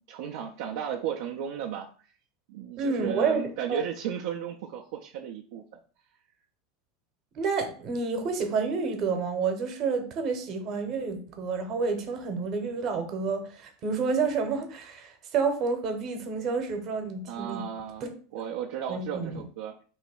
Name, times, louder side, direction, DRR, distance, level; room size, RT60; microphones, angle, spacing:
voice 1, 0.0-1.9 2.5-5.6 17.3-18.1 18.3-19.7, right 9 dB, 60° right, 0 dB, 0.4 m, -34 dB
voice 2, 2.8-3.8 7.4-17.7 18.0-18.1 18.9-19.3, right 5 dB, 45° right, 6 dB, 0.9 m, -29 dB
3.1 x 2.9 x 4.4 m, 0.41 s
figure-of-eight pair, 75°, 0 cm